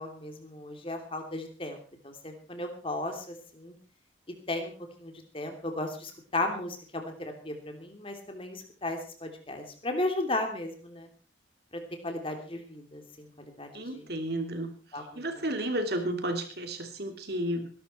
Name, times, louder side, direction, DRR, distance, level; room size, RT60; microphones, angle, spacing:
voice 1, 0.0-1.8 2.0-3.7 4.5-4.7 5.0-11.1 11.7-14.1 14.9-15.0, left 2 dB, 30° left, 4 dB, 3.1 m, -35 dB
voice 2, 13.7-14.7 15.1-17.7, right 1 dB, 55° right, 6 dB, 2.9 m, -32 dB
19.5 x 12.0 x 4.5 m, 0.39 s
head